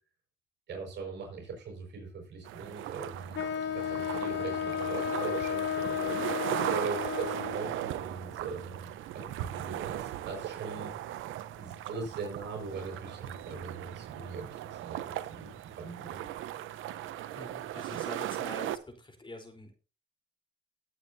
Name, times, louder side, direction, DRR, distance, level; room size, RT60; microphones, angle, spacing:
voice 1, 0.7-3.4 3.7-6.3 6.7-10.9 11.5-16.2, right 4 dB, 65° right, 1 dB, 5.7 m, -41 dB
sound 1, 2.4-18.8, right 12 dB, 85° right, 0.9 m, -38 dB
Wind instrument woodwind instrument, 3.3-7.8, left 9 dB, 60° left, 0.9 m, -33 dB
voice 2, 17.3-19.7, equal, 25° left, 4 dB, 4.2 m, -45 dB
19.5 x 8.0 x 2.8 m, 0.34 s
cardioid pair, 90°, 20 cm